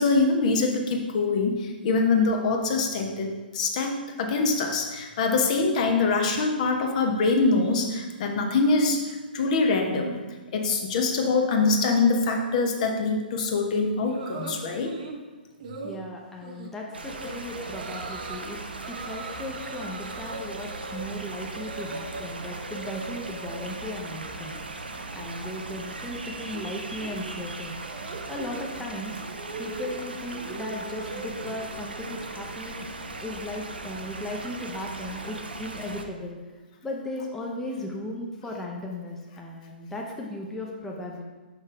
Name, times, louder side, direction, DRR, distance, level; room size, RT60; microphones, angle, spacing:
voice 1, 0.0-10.2 10.5-15.0, left 3 dB, 45° left, 3 dB, 0.9 m, -24 dB
sound 1, 14.1-15.2 15.6-16.0 16.4-16.7 17.0-17.3 17.7-18.5 18.8-22.3 22.6-23.8 24.2-24.6 24.8-33.0, right 3 dB, 50° right, 1.1 m, -41 dB
voice 2, 15.8-18.6 18.9-24.7 25.1-27.8 28.3-29.2 29.6-32.9 33.2-36.4 36.8-41.2, left 1 dB, 5° left, -1 dB, 0.8 m, -36 dB
sound 2, 16.9-36.0, right 2 dB, 80° right, 0.7 m, -38 dB
5.7 x 5.4 x 4.6 m, 1.3 s
figure-of-eight pair, 120°, 5 cm